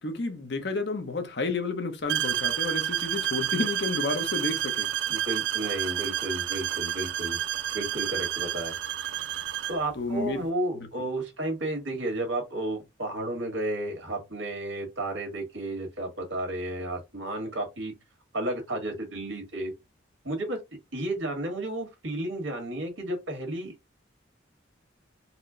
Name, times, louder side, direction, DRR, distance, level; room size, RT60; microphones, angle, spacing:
voice 1, 0.0-4.9 10.0-10.4, left 3 dB, 60° left, 0.8 m, -31 dB
sound 1, 2.1-9.8, right 12 dB, 65° right, 0.4 m, -30 dB
voice 2, 5.1-7.4 7.7-8.8 9.7-17.9 18.3-19.7 20.2-23.7, right 1 dB, 85° right, 1.6 m, -32 dB
4.2 x 2.1 x 3.7 m
head